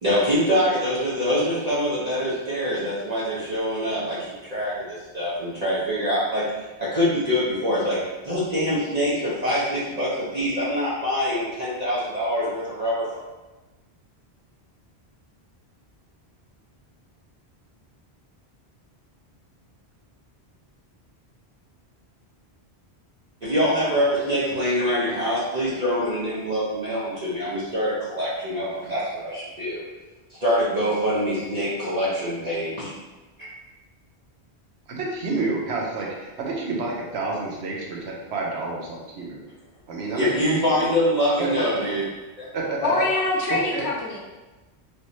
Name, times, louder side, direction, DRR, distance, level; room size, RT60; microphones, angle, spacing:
voice 1, 0.0-6.4 6.8-13.1 23.4-29.8 30.3-32.9 40.1-42.1 42.4-42.5, equal, 40° right, -10 dB, 0.8 m, -24 dB
voice 2, 34.9-39.4 39.9-41.0 41.4-41.5 42.5-43.0 43.5-43.8, right 3 dB, 90° right, -2 dB, 1.0 m, -29 dB
voice 3, 42.8-44.2, left 3 dB, 85° left, -1 dB, 0.9 m, -24 dB
3.3 x 3.0 x 2.7 m, 1.1 s
omnidirectional pair, 1.1 m